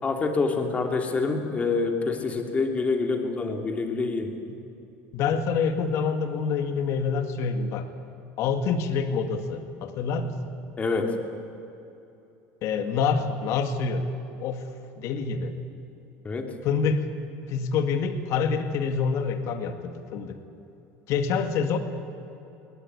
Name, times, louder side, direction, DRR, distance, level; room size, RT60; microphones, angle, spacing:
voice 1, 0.0-4.3 10.8-11.1 16.2-16.5, left 4 dB, 25° left, 4 dB, 2.9 m, -26 dB
voice 2, 5.1-7.9 8.4-10.4 12.6-14.0 14.4-14.7 15.0-15.5 16.6-17.1 17.5-20.4 21.1-21.8, left 5 dB, 60° left, 8 dB, 2.0 m, -26 dB
22.0 x 18.5 x 9.6 m, 2.9 s
supercardioid pair, 115°, 6 cm